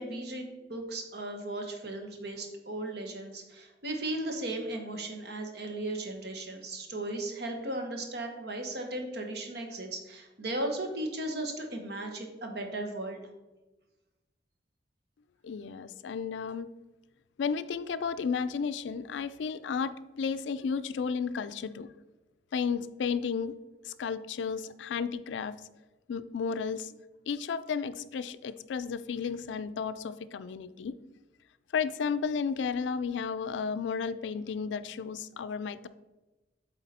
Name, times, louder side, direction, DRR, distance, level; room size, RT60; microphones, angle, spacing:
voice 1, 0.0-13.2, right 1 dB, 60° right, 3 dB, 1.1 m, -36 dB
voice 2, 15.4-16.7 17.4-21.9 22.5-23.5 23.8-25.6 26.1-27.0 27.3-31.0 31.7-35.9, left 6 dB, 80° left, 13 dB, 0.4 m, -33 dB
8.1 x 3.9 x 4.2 m, 1.1 s
head